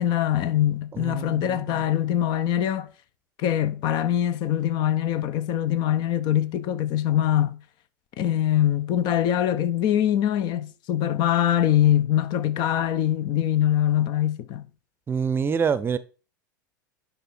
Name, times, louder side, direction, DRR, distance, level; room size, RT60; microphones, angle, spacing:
voice 1, 0.0-2.9 3.4-7.6 8.2-14.7, left 11 dB, 45° left, 0.8 m, -23 dB
voice 2, 0.9-1.8 15.1-16.0, right 6 dB, 20° right, 0.7 m, -26 dB
10.0 x 5.5 x 4.4 m
figure-of-eight pair, 85°, 11 cm